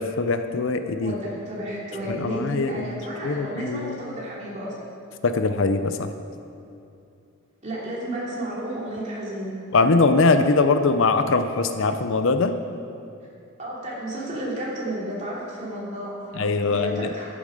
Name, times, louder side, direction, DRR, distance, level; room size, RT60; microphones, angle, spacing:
voice 1, 0.0-1.1 2.1-4.0 5.2-6.1 9.7-12.5 16.3-17.1, left 3 dB, 60° left, 9 dB, 0.5 m, -22 dB
voice 2, 1.0-4.7 7.6-9.6 13.6-17.3, right 1 dB, 30° right, -6 dB, 3.0 m, -32 dB
13.5 x 8.6 x 5.2 m, 2.6 s
head